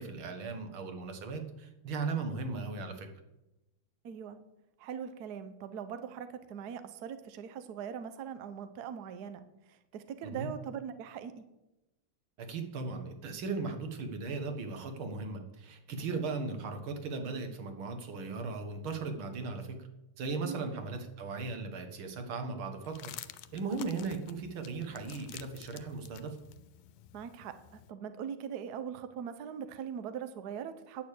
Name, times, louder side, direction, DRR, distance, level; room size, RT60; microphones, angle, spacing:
voice 1, 0.0-3.1 10.2-10.5 12.4-19.9 20.2-23.1 23.5-26.4, right 4 dB, 90° right, 6 dB, 2.3 m, -37 dB
voice 2, 4.0-4.4 4.8-11.4 20.4-20.6 27.1-31.0, right 8 dB, 60° right, 10 dB, 1.2 m, -41 dB
sound 1, 22.8-27.9, left 12 dB, 90° left, 1.4 m, -50 dB
9.4 x 6.7 x 8.3 m, 0.94 s
omnidirectional pair, 2.2 m